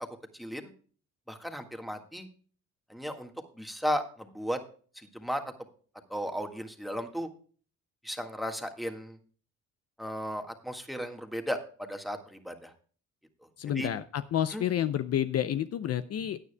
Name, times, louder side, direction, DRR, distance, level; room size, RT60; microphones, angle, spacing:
voice 1, 0.3-0.7 1.3-2.3 2.9-3.3 3.6-4.6 4.9-5.4 6.1-7.3 8.0-9.2 10.0-12.7 13.7-13.9 14.5-14.6, equal, ahead, 5 dB, 1.7 m, -35 dB
voice 2, 13.6-16.4, left 10 dB, 55° left, 12 dB, 0.6 m, -29 dB
16.5 x 9.6 x 2.2 m, 0.42 s
cardioid pair, 90°, 30 cm